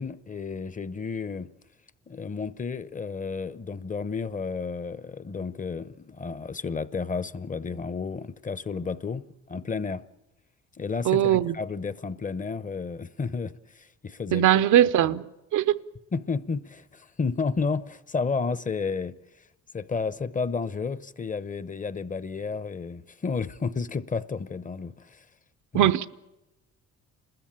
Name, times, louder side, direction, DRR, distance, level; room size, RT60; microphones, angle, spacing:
voice 1, 0.0-1.5 2.1-10.0 10.8-14.5 15.0-15.1 16.1-19.1 19.7-25.2 25.7-25.9, left 4 dB, 25° left, 0.7 m, -32 dB
voice 2, 11.0-11.5 14.3-15.2 15.5-15.8 25.7-26.1, right 12 dB, 80° right, 0.8 m, -20 dB
30.0 x 13.5 x 8.7 m
cardioid pair, 90°, 30 cm